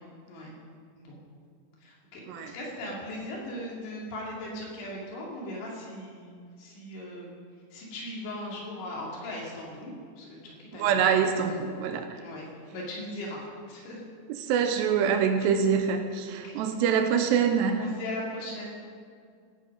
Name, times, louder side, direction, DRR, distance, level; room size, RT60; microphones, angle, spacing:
voice 1, 1.8-7.4 7.7-11.8 12.2-13.4 13.7-14.1 15.4-15.5 16.3-16.6 17.8-18.7, left 1 dB, 85° left, -3 dB, 4.8 m, -39 dB
voice 2, 10.7-12.2 14.5-17.9, right 7 dB, 85° right, 7 dB, 2.8 m, -25 dB
18.0 x 10.0 x 5.3 m, 2.1 s
omnidirectional pair, 5.2 m